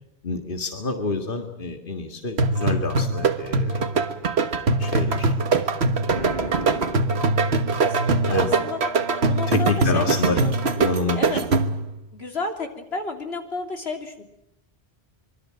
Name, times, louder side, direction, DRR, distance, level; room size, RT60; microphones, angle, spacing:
voice 1, 0.2-4.0 4.8-5.3 8.3-8.6 9.5-10.4 10.7-11.2, left 3 dB, 55° left, 5 dB, 2.1 m, -27 dB
sound 1, 2.4-11.9, right 3 dB, 85° right, 1.6 m, -22 dB
Boom, 6.1-7.9, right 1 dB, 50° right, 8.3 m, -33 dB
voice 2, 7.8-8.8 9.3-10.6 11.2-11.4 12.1-14.2, left 3 dB, 80° left, 4 dB, 3.5 m, -32 dB
25.0 x 23.5 x 7.6 m, 0.84 s
omnidirectional pair, 1.1 m